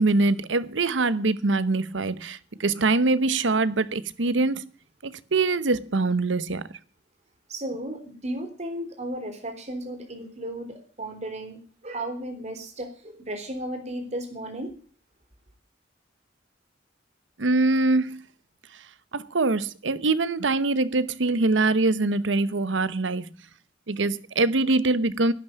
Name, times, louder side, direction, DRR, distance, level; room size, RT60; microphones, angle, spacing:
voice 1, 0.0-4.7 5.0-6.7 17.4-18.2 19.1-23.2 23.9-25.3, right 3 dB, 85° right, 0.9 m, -23 dB
voice 2, 7.5-14.7, right 1 dB, 40° right, 3.7 m, -34 dB
11.5 x 9.2 x 9.1 m
head